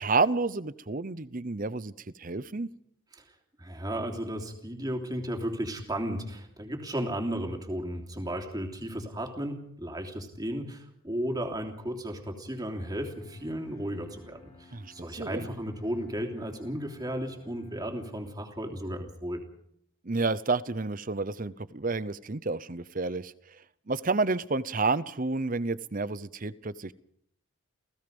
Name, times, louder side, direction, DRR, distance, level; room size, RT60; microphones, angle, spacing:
voice 1, 0.0-2.7 14.7-15.5 20.0-23.3 23.9-26.9, right 3 dB, 40° right, 17 dB, 0.7 m, -30 dB
voice 2, 3.1-19.4, equal, 20° right, 3 dB, 3.2 m, -34 dB
Bowed string instrument, 12.7-18.5, left 3 dB, 30° left, 3.5 m, -56 dB
29.5 x 17.0 x 5.4 m, 0.72 s
head